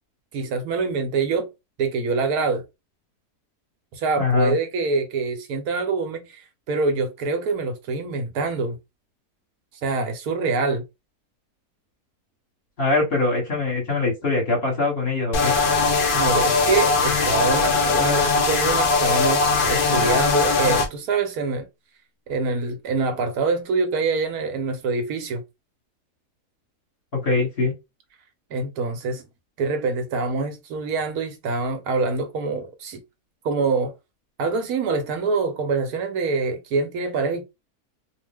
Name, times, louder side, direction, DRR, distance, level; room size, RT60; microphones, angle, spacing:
voice 1, 0.3-1.5 1.8-2.6 3.9-8.8 9.8-10.8 16.1-21.7 22.3-25.4 28.5-29.2 29.6-33.0 33.4-33.9 34.4-37.4, right 4 dB, 75° right, 1.1 m, -25 dB
voice 2, 4.2-4.6 12.8-15.5 27.2-27.7, left 3 dB, 40° left, 1.2 m, -22 dB
sound 1, 15.3-20.9, left 4 dB, 85° left, 0.4 m, -20 dB
2.7 x 2.1 x 3.3 m
omnidirectional pair, 1.7 m